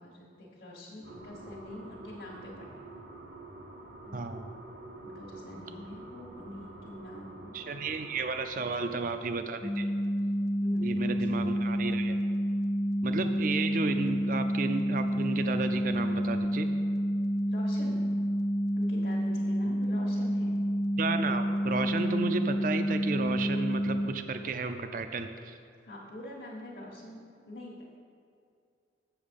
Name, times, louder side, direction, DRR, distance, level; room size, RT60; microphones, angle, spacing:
voice 1, 0.0-2.9 4.0-4.2 5.0-7.6 8.6-8.9 10.6-11.3 17.5-18.0 18.7-20.6 25.8-27.2 27.5-28.0, left 1 dB, 55° left, -5 dB, 1.3 m, -45 dB
sound 1, 1.0-8.5, right 2 dB, 65° right, 0.9 m, -47 dB
voice 2, 4.1-4.4 7.5-9.9 10.8-12.2 13.0-16.7 21.0-25.6, right 3 dB, 45° right, 8 dB, 0.5 m, -33 dB
sound 2, 9.6-24.1, equal, 20° left, 0.5 m, -29 dB
7.2 x 7.1 x 5.2 m, 2.4 s
head